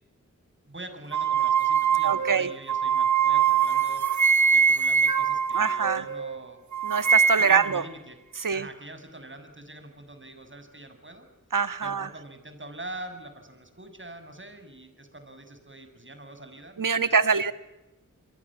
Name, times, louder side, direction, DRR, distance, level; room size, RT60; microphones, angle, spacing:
voice 1, 0.7-4.0 4.5-6.6 7.4-8.2 8.5-11.3 11.8-17.3, right 2 dB, 40° right, 8 dB, 7.0 m, -44 dB
sound 1, 1.1-6.4 6.7-7.8, right 7 dB, 65° right, 1.4 m, -23 dB
voice 2, 2.0-2.5 5.5-6.0 6.8-7.8 8.4-8.6 11.5-12.1 16.8-17.5, right 5 dB, 85° right, 11 dB, 1.6 m, -24 dB
29.5 x 23.0 x 7.5 m, 0.95 s
cardioid pair, 40°, 32 cm